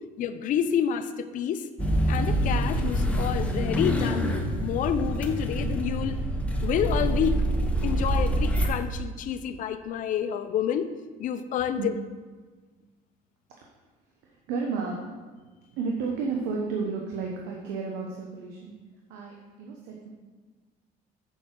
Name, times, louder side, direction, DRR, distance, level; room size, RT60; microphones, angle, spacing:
voice 1, 0.2-1.7 2.1-6.2 6.6-7.4 7.8-10.9 11.2-11.9, left 9 dB, 50° left, 10 dB, 0.6 m, -28 dB
sound 1, 1.8-8.7, right 1 dB, 10° left, 1.0 m, -26 dB
voice 2, 14.2-15.0 15.7-18.7 19.1-20.1, right 4 dB, 85° right, 0 dB, 1.0 m, -32 dB
7.0 x 4.9 x 6.0 m, 1.4 s
cardioid pair, 115°, 17 cm